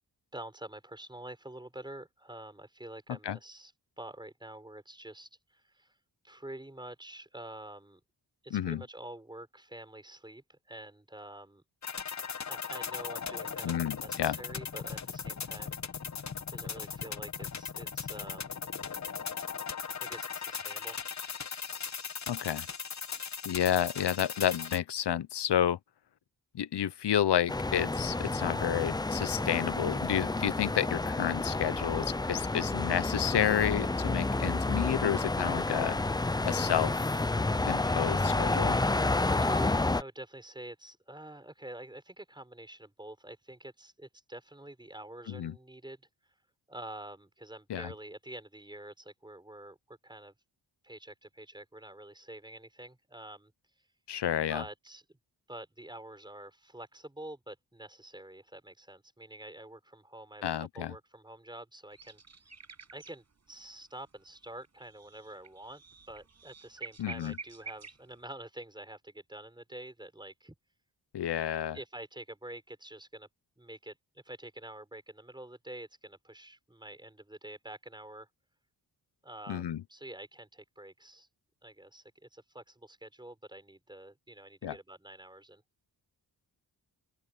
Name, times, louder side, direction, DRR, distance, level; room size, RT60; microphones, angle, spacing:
voice 1, 0.3-6.0 6.2-8.0 8.4-11.6 12.4-15.8 16.5-18.6 20.0-21.0 39.4-46.1 46.7-50.3 50.8-53.5 54.5-55.2 55.5-62.2 62.9-70.5 71.7-73.3 73.6-78.3 79.2-81.3 81.6-85.6, right 1 dB, 10° right, 5.8 m, -47 dB
voice 2, 8.5-8.8 13.6-14.4 22.3-22.7 23.4-25.8 26.5-36.0 36.4-36.9 37.7-38.8 45.3-45.5 47.7-47.9 54.1-54.6 60.4-60.9 67.0-67.4 71.1-71.8 79.5-79.8 84.6-84.8, left 10 dB, 70° left, 0.8 m, -30 dB
sound 1, 11.8-24.8, left 6 dB, 40° left, 1.1 m, -38 dB
sound 2, 27.5-40.0, left 2 dB, 10° left, 0.4 m, -30 dB
sound 3, 61.9-63.7 63.9-68.2, right 5 dB, 40° right, 6.3 m, -49 dB
open air
wide cardioid pair, 175°, 42 cm